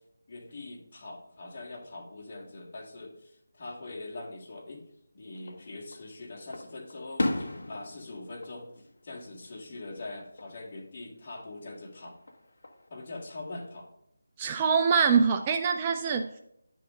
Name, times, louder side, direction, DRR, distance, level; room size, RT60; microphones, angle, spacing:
voice 1, 0.3-4.8 5.1-8.7 9.0-12.2 12.9-13.9, left 2 dB, 35° left, -3 dB, 1.9 m, -42 dB
Fireworks, 5.3-6.0 6.5-9.6 10.0-10.5 12.1-12.9, left 1 dB, 65° left, 1.0 m, -36 dB
voice 2, 14.4-16.4, right 6 dB, 20° right, 5 dB, 0.3 m, -24 dB
9.5 x 3.8 x 5.2 m, 0.79 s
figure-of-eight pair, 165°, 0 cm